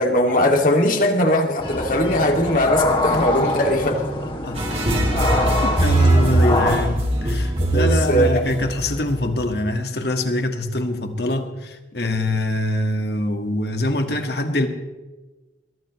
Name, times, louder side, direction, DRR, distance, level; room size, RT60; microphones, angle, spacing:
voice 1, 0.0-4.0 5.3-5.4 7.7-8.4, left 1 dB, 50° left, 2 dB, 2.4 m, -20 dB
sound 1, 1.6-6.8, left 1 dB, 30° left, 2.5 m, -24 dB
sound 2, 4.5-9.6, right 1 dB, 35° right, 4.2 m, -20 dB
voice 2, 5.6-14.7, left 1 dB, 65° left, 5 dB, 1.9 m, -24 dB
22.5 x 17.5 x 3.2 m, 1.2 s
head